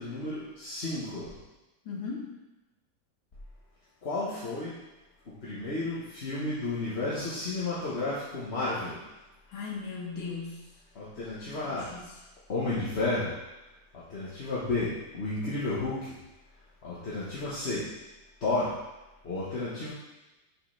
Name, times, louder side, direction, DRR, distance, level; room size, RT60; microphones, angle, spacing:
voice 1, 0.0-1.3 4.0-4.8 5.4-9.0 10.9-11.9 12.5-13.3 13.9-16.1 16.8-17.8 18.4-18.7 19.2-19.9, left 2 dB, 35° left, -9 dB, 1.4 m, -32 dB
voice 2, 1.8-2.4 9.5-10.7 11.6-12.1, left 5 dB, 70° left, -3 dB, 2.2 m, -38 dB
5.8 x 5.3 x 5.8 m, 1.0 s
omnidirectional pair, 2.2 m